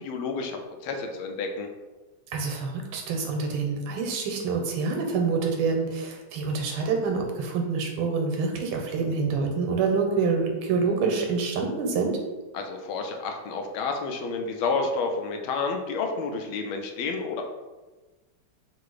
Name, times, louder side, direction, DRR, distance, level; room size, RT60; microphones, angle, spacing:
voice 1, 0.0-1.7 12.5-17.4, left 4 dB, 80° left, 3 dB, 1.4 m, -30 dB
voice 2, 2.3-12.2, right 4 dB, 90° right, 2 dB, 1.7 m, -26 dB
3.8 x 2.5 x 4.7 m, 1.2 s
omnidirectional pair, 2.4 m